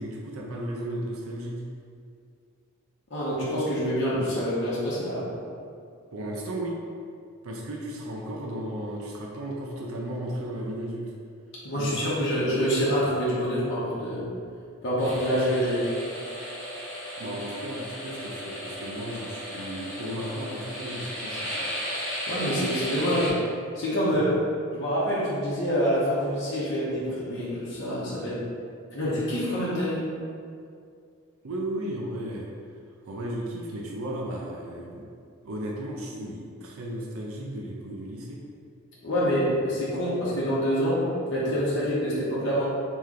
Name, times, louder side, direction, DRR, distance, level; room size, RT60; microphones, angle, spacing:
voice 1, 0.0-1.6 6.1-6.8 7.4-11.1 11.8-12.2 17.2-21.7 24.1-24.3 31.4-32.5 33.0-35.1 35.4-38.4, right 1 dB, 85° right, -2 dB, 0.5 m, -34 dB
voice 2, 3.1-5.2 11.6-14.2 14.8-15.8 22.3-23.3 23.8-24.3 24.7-28.4 28.9-30.0 39.0-41.0 41.3-42.7, equal, 55° left, -9 dB, 0.9 m, -26 dB
sound 1, 15.0-23.3, equal, 10° left, 1.1 m, -35 dB
3.2 x 3.0 x 3.7 m, 2.3 s
head